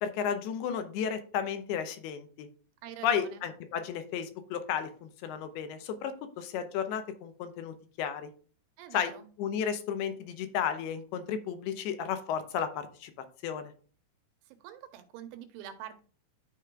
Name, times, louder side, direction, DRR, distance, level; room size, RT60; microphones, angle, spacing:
voice 1, 0.0-2.5 3.0-8.3 8.9-9.1 9.4-13.1 13.4-13.7, left 8 dB, 80° left, 9 dB, 2.7 m, -33 dB
voice 2, 2.8-3.5 8.8-9.3 14.5-16.0, right 10 dB, 85° right, 8 dB, 2.9 m, -46 dB
12.5 x 4.9 x 2.3 m, 0.40 s
omnidirectional pair, 4.6 m